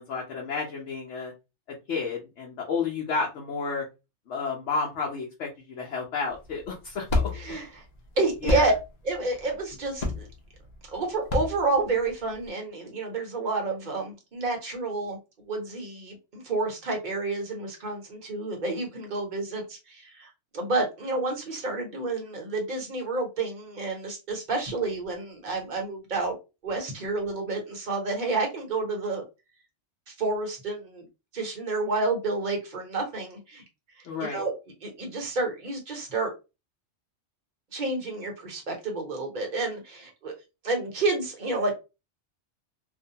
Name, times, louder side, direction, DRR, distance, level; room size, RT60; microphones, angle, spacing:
voice 1, 0.0-1.3 1.9-3.8 4.3-7.3 8.4-8.7 34.0-34.4, left 4 dB, 75° left, -2 dB, 1.0 m, -31 dB
sound 1, 6.3-12.5, left 2 dB, 50° left, 0.5 m, -31 dB
voice 2, 7.3-7.8 8.2-8.7 9.0-10.3 10.9-15.2 15.4-26.4 26.6-29.2 30.1-31.1 31.3-33.6 34.2-34.6 34.8-36.3 37.7-40.3 40.6-41.8, right 3 dB, 45° right, 1 dB, 0.9 m, -29 dB
2.6 x 2.1 x 2.7 m, 0.27 s
omnidirectional pair, 1.2 m